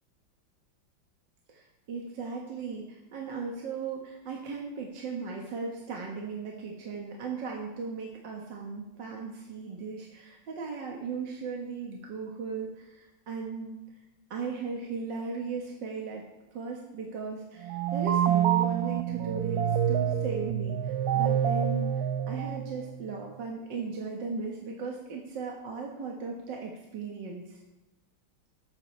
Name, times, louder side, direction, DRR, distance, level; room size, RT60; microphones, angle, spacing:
voice 1, 1.5-13.8 14.3-16.2 16.5-21.9 22.3-27.6, right 4 dB, 60° right, -1 dB, 2.0 m, -37 dB
sound 1, 17.6-23.1, right 10 dB, 85° right, 0.8 m, -27 dB
18.5 x 8.9 x 3.3 m, 1.0 s
omnidirectional pair, 2.3 m